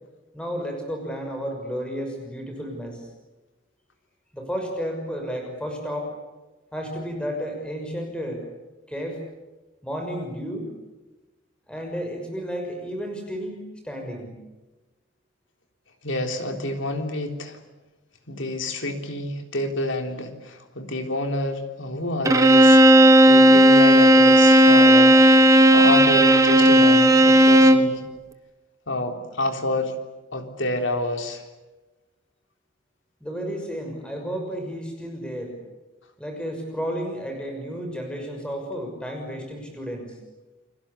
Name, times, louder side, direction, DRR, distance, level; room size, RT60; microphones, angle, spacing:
voice 1, 0.3-3.1 4.3-6.1 6.7-8.4 8.9-9.2 9.8-10.7 11.7-14.4 33.2-35.5 36.2-40.2, equal, 5° left, 3 dB, 6.1 m, -32 dB
voice 2, 16.0-17.6 18.3-25.2 25.7-28.0 28.9-30.0 30.3-31.5, left 1 dB, 65° left, 5 dB, 3.6 m, -28 dB
Bowed string instrument, 22.3-27.9, right 1 dB, 15° right, 1.4 m, -13 dB
30.0 x 22.0 x 8.5 m, 1.1 s
head